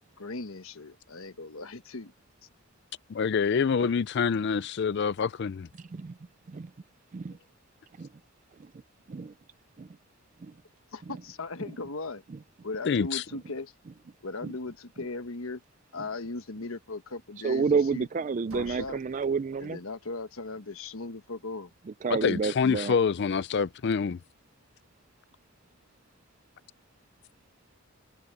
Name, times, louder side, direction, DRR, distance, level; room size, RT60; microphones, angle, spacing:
voice 1, 0.2-2.1 10.9-12.2 12.6-13.7 14.2-15.6 15.9-17.6 17.9-18.1 18.5-19.0 19.6-21.7, left 3 dB, 70° left, 1.3 m, -38 dB
voice 2, 3.1-5.7 12.9-13.2 22.1-24.2, left 6 dB, 50° left, 0.4 m, -26 dB
voice 3, 5.7-6.2 6.5-6.7 7.1-7.4 8.0-8.1 8.6-8.7 9.1-9.3 9.8-9.9 10.4-10.5 11.1-11.2 12.3-12.4 14.4-14.5 17.4-19.8 22.0-22.9, right 5 dB, 35° right, 0.3 m, -30 dB
sound 1, 18.5-20.3, right 3 dB, 80° right, 1.5 m, -50 dB
head